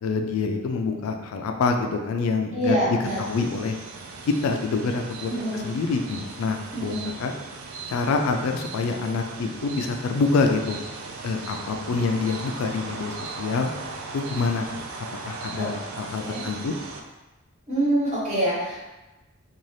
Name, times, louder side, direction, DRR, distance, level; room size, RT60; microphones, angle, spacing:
voice 1, 0.0-3.8 4.3-7.3 7.9-10.8 11.2-13.7 14.1-14.8 15.2-16.7, left 4 dB, 80° left, 4 dB, 0.3 m, -26 dB
voice 2, 2.5-3.2 5.3-5.7 6.7-7.1 15.6-15.7 16.2-16.4 17.7-18.8, right 1 dB, 35° right, -8 dB, 1.1 m, -25 dB
sound 1, 3.0-17.0, right 4 dB, 75° right, 0.4 m, -38 dB
2.6 x 2.3 x 3.2 m, 1.1 s
head